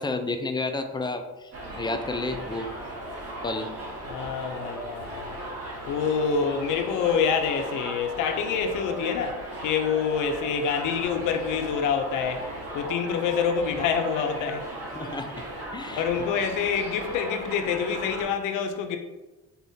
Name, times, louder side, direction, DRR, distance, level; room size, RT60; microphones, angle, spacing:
voice 1, 0.0-1.5 1.8-2.7 3.4-3.7 14.9-15.3 15.7-16.0, left 3 dB, 15° left, 6 dB, 0.4 m, -30 dB
Subway metro underground, 1.5-18.2, right 1 dB, 50° right, 1.4 m, -37 dB
voice 2, 4.1-5.4 5.9-12.5 12.7-14.7 15.9-19.0, left 6 dB, 90° left, 6 dB, 0.5 m, -27 dB
4.3 x 3.5 x 2.7 m, 1.1 s
cardioid pair, 90°, 30 cm